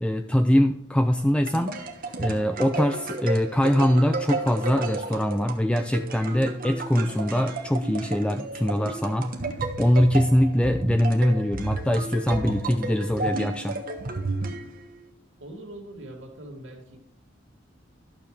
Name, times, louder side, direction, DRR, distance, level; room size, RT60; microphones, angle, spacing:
voice 1, 0.0-1.7 2.2-9.3 9.8-13.8, equal, 5° left, 7 dB, 0.4 m, -23 dB
sound 1, 1.2-15.1, right 3 dB, 50° right, 1.2 m, -32 dB
voice 2, 15.4-17.0, right 1 dB, 85° right, -1 dB, 2.4 m, -42 dB
12.0 x 6.9 x 3.3 m, 0.79 s
head